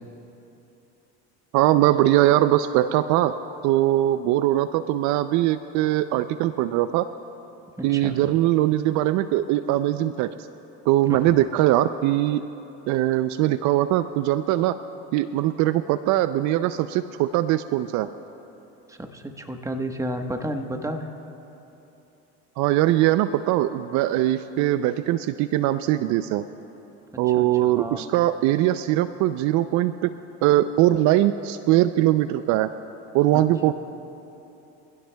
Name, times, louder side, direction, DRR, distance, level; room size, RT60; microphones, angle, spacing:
voice 1, 1.5-7.1 7.8-10.3 10.9-12.4 12.9-14.8 15.1-18.1 22.6-26.5 27.2-30.1 30.4-32.7 33.1-33.7, right 14 dB, 60° right, 12 dB, 0.5 m, -21 dB
voice 2, 7.8-8.3 11.1-11.4 18.9-21.1 27.1-28.0 33.3-33.7, right 1 dB, 10° right, 5 dB, 1.2 m, -32 dB
24.5 x 16.0 x 2.3 m, 3.0 s
supercardioid pair, 95°, 33 cm